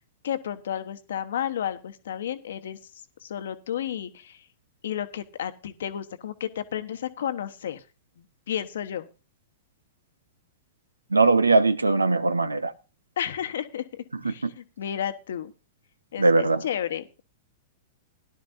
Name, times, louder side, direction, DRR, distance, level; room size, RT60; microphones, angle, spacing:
voice 1, 0.2-2.8 3.2-4.4 4.8-7.8 8.5-9.1 13.2-15.5 16.1-17.2, left 10 dB, 65° left, 1.1 m, -32 dB
voice 2, 11.1-12.7 14.2-14.5 16.2-16.6, right 3 dB, 85° right, 0.7 m, -20 dB
17.0 x 11.5 x 2.6 m
figure-of-eight pair, 100°, 0 cm